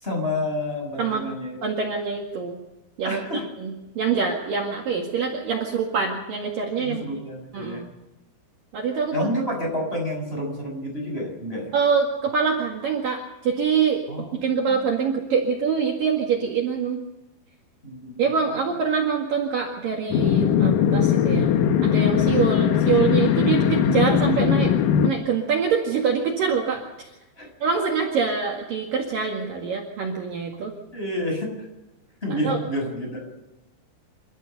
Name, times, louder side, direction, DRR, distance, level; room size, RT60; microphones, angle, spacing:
voice 1, 0.0-1.8 3.0-3.5 6.8-7.8 9.1-11.7 14.1-14.4 14.7-14.8 17.8-18.8 27.4-27.5 30.9-31.7 32.2-33.3, left 1 dB, 10° left, 1 dB, 6.6 m, -30 dB
voice 2, 1.6-2.6 3.0-7.0 7.5-7.9 8.7-9.3 11.7-14.0 14.4-17.0 18.2-21.5 21.8-24.8 25.0-27.1 27.6-30.7 32.4-32.6, right 6 dB, 55° right, 0 dB, 3.2 m, -25 dB
sound 1, 20.1-25.1, left 8 dB, 80° left, 1.9 m, -20 dB
28.0 x 14.0 x 6.8 m, 1.0 s
omnidirectional pair, 5.3 m